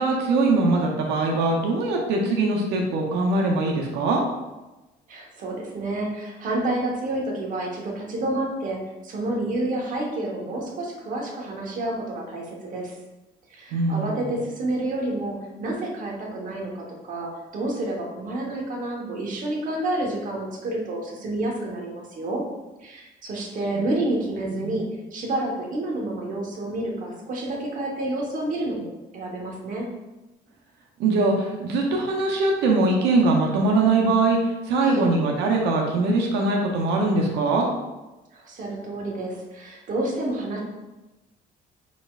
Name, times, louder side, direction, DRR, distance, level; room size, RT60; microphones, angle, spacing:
voice 1, 0.0-4.2 13.7-14.3 24.6-24.8 31.0-37.7, right 3 dB, 85° right, 0 dB, 0.7 m, -22 dB
voice 2, 5.1-8.8 9.0-12.9 13.5-22.4 22.8-24.8 25.1-29.9 34.8-35.1 38.3-40.6, right 1 dB, 50° right, -1 dB, 1.1 m, -29 dB
4.3 x 4.1 x 2.4 m, 1.1 s
cardioid pair, 110°, 17 cm